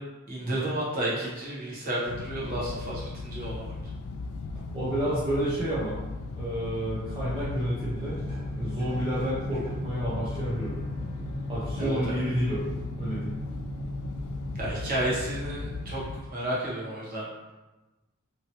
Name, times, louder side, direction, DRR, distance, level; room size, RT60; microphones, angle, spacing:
voice 1, 0.3-3.8 11.8-12.2 14.6-16.0 16.3-17.3, right 1 dB, 40° right, -7 dB, 1.1 m, -31 dB
sound 1, 2.1-16.2, left 3 dB, 80° left, 0.3 m, -37 dB
voice 2, 4.7-5.9 6.3-8.2 8.6-10.7 11.5-12.6 13.0-13.3, right 1 dB, 25° right, -10 dB, 0.6 m, -30 dB
sound 2, 7.9-14.5, left 1 dB, 25° left, 1.0 m, -37 dB
2.9 x 2.7 x 2.9 m, 1.1 s
head